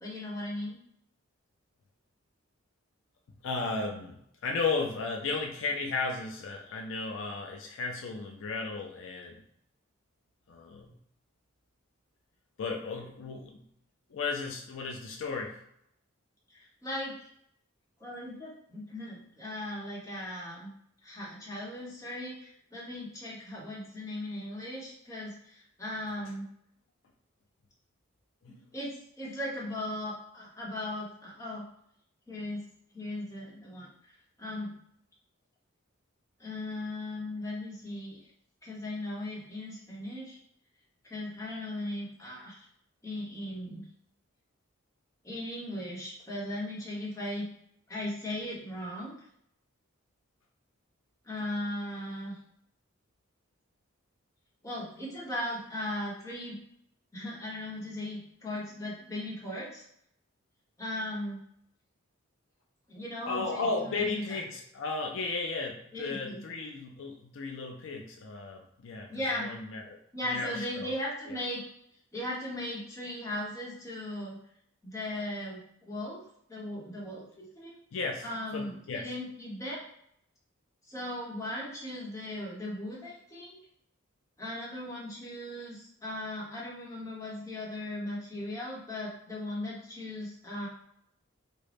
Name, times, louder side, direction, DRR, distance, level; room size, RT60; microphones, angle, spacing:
voice 1, 0.0-0.8 16.5-17.3 18.0-20.7 21.0-26.5 28.7-31.6 32.3-32.6 32.9-34.7 36.4-38.2 38.6-40.4 41.0-42.7 43.0-43.8 45.2-47.5 47.9-49.3 51.2-52.4 54.6-56.6 57.1-59.8 60.8-61.4 62.9-64.4 65.9-66.4 69.1-69.5 70.1-71.6 72.1-74.4 74.8-76.2 76.5-77.7 78.2-79.8 80.9-83.5 84.4-90.7, left 1 dB, 15° left, -6 dB, 0.9 m, -38 dB
voice 2, 3.3-9.4 10.5-10.9 12.6-13.7 14.1-15.6 28.4-28.6 63.3-70.0 70.3-71.0 71.3-71.4 77.9-78.3 78.5-79.1, left 3 dB, 65° left, 2 dB, 0.4 m, -34 dB
3.7 x 2.1 x 3.3 m, 0.73 s
head